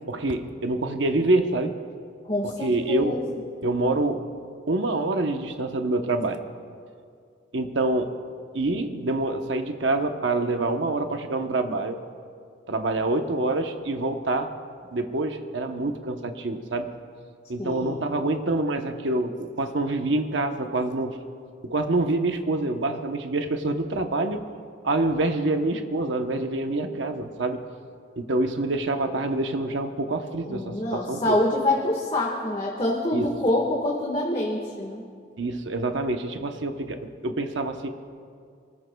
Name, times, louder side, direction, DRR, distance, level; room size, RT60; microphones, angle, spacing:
voice 1, 0.1-1.8 2.4-3.2 3.6-4.2 4.7-6.4 7.5-8.1 8.5-12.0 12.7-14.5 14.9-16.9 17.5-21.2 21.6-24.4 24.8-27.6 28.2-31.4 33.1-33.3 35.4-37.9, right 2 dB, 85° right, 5 dB, 0.9 m, -26 dB
voice 2, 2.2-3.2 17.6-18.1 30.2-35.0, left 1 dB, 30° left, -3 dB, 1.6 m, -26 dB
24.5 x 20.0 x 2.3 m, 2.2 s
head